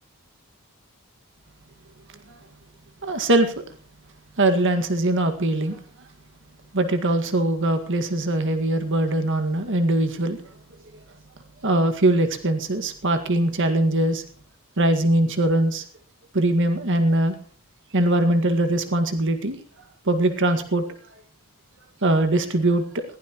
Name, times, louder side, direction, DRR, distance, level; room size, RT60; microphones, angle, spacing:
voice 1, 3.0-3.5 4.4-5.8 6.7-10.4 11.6-14.2 14.8-15.8 16.3-17.3 17.9-19.6 20.1-20.9 22.0-23.0, right 1 dB, 60° right, 7 dB, 1.9 m, -21 dB
20.5 x 16.0 x 3.0 m, 0.42 s
head